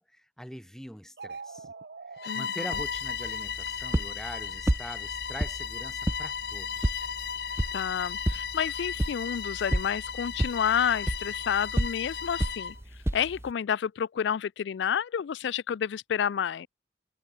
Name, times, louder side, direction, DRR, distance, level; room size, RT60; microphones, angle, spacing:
voice 1, 0.0-1.7 2.3-7.0, equal, 5° left, 2.2 m, -43 dB
sound 1, 1.1-2.3, right 4 dB, 60° right, 0.7 m, -42 dB
Bowed string instrument, 2.2-12.8, left 7 dB, 60° left, 1.3 m, -35 dB
sound 2, 2.7-13.5, right 1 dB, 15° right, 0.6 m, -33 dB
voice 2, 7.7-12.7 13.1-16.7, left 8 dB, 75° left, 0.3 m, -29 dB
head